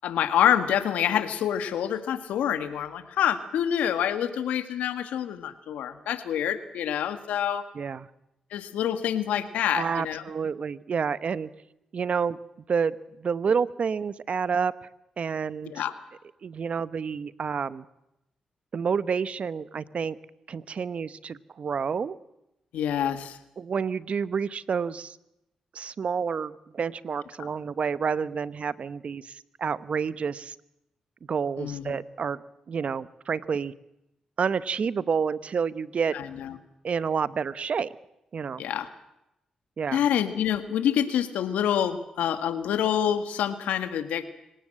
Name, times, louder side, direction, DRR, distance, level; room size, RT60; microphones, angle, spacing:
voice 1, 0.0-7.7 8.5-10.2 15.7-15.9 22.7-23.4 27.4-27.5 31.6-31.9 36.1-36.6 38.6-38.9 39.9-44.3, left 9 dB, 85° left, 11 dB, 1.5 m, -27 dB
voice 2, 7.7-8.1 9.7-11.5 11.9-12.4 12.7-14.7 15.2-15.9 16.4-17.8 18.7-20.2 20.5-22.2 23.6-25.2 25.7-30.6 31.3-32.4 32.7-33.7 34.4-36.2 36.8-37.9 38.3-38.6 39.8-40.0, right 6 dB, 60° right, 16 dB, 1.0 m, -29 dB
25.5 x 18.0 x 7.7 m, 0.86 s
supercardioid pair, 50°, 2 cm